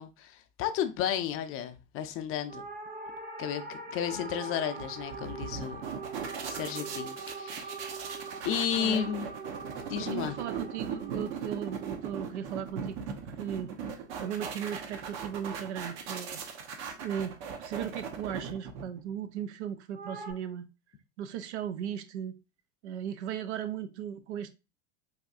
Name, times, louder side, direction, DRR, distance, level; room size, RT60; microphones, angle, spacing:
voice 1, 0.0-2.6 3.4-5.8 6.5-7.8 8.4-9.3 9.9-10.4, left 9 dB, 40° left, 0.5 m, -33 dB
sound 1, 2.5-13.0 19.9-20.3, right 3 dB, 25° right, 0.7 m, -43 dB
sound 2, 4.8-19.1, right 6 dB, 55° right, 0.8 m, -39 dB
voice 2, 8.7-9.3 9.9-13.0 13.4-13.7 14.2-16.4 16.8-20.7 21.2-22.4 22.8-24.5, right 9 dB, 85° right, 0.6 m, -37 dB
4.2 x 2.6 x 2.4 m
supercardioid pair, 105°, 33 cm